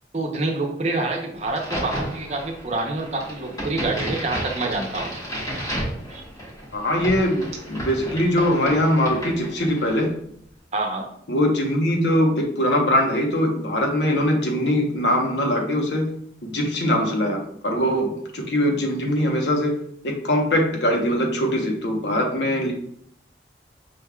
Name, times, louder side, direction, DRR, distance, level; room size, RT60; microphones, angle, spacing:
voice 1, 0.1-5.2 6.1-6.2 10.7-11.0, right 2 dB, 40° right, 1 dB, 0.7 m, -27 dB
Crack, 1.5-10.0, equal, 20° left, 1.2 m, -32 dB
voice 2, 6.7-10.1 11.3-16.1 16.4-19.8 20.0-22.7, equal, 85° left, 1 dB, 0.9 m, -22 dB
5.2 x 3.4 x 2.3 m, 0.68 s
head